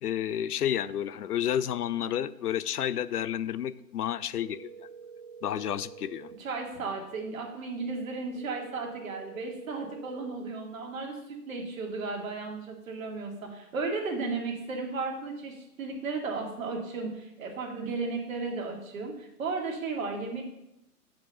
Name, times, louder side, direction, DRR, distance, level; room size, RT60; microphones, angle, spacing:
voice 1, 0.0-4.7 5.4-6.3, left 10 dB, 80° left, 16 dB, 0.5 m, -30 dB
sound 1, 4.4-6.4 8.4-10.4, right 6 dB, 30° right, 0.5 m, -47 dB
voice 2, 6.4-11.2 11.5-20.4, right 3 dB, 60° right, 1 dB, 2.0 m, -34 dB
7.2 x 5.3 x 5.4 m, 0.86 s
hypercardioid pair, 130°, 45 cm